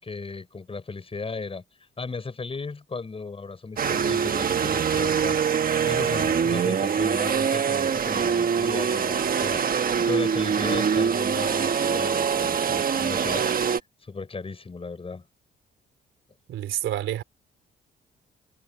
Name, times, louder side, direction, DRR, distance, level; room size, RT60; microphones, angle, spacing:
voice 1, 0.0-1.6 2.0-13.5 14.0-15.2, left 4 dB, 30° left, 6.4 m, -36 dB
sound 1, 3.8-13.8, right 7 dB, 45° right, 1.3 m, -24 dB
voice 2, 16.5-17.2, right 12 dB, 80° right, 3.6 m, -28 dB
cardioid pair, 90°, 20 cm